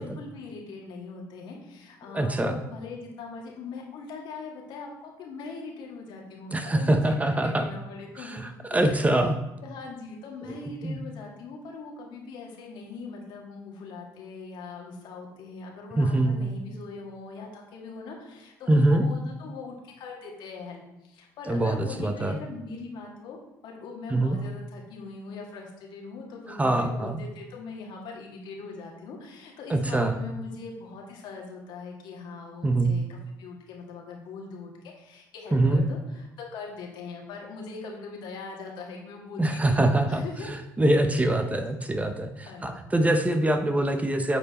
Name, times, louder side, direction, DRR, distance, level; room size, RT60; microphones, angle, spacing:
voice 1, 0.0-9.3 9.6-23.4 23.6-40.5 41.4-41.6 42.5-42.8, left 4 dB, 75° left, 0 dB, 1.8 m, -41 dB
voice 2, 2.1-2.6 6.5-7.7 8.2-9.4 10.8-11.0 15.9-16.4 18.7-19.0 21.5-22.4 24.1-24.4 26.5-27.2 29.7-30.2 32.6-33.0 35.5-35.9 39.4-44.4, right 1 dB, 20° right, 8 dB, 0.8 m, -24 dB
8.1 x 4.5 x 4.2 m, 0.92 s
supercardioid pair, 75°, 8 cm